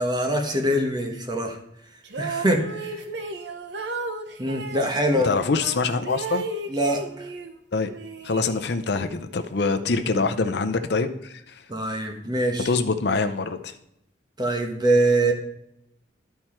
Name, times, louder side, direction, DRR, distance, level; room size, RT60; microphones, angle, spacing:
voice 1, 0.0-1.6 2.2-3.0 4.4-5.4 6.7-7.3 9.9-10.0 11.7-12.7 14.4-15.3, right 1 dB, 25° right, 3 dB, 1.2 m, -24 dB
sound 1, 2.0-4.9 5.6-7.6 7.9-9.0, right 2 dB, 75° right, 0.9 m, -34 dB
voice 2, 5.2-6.4 7.7-7.9 8.2-11.5 12.6-13.7, left 4 dB, 65° left, 8 dB, 0.6 m, -24 dB
12.0 x 4.5 x 4.4 m, 0.79 s
head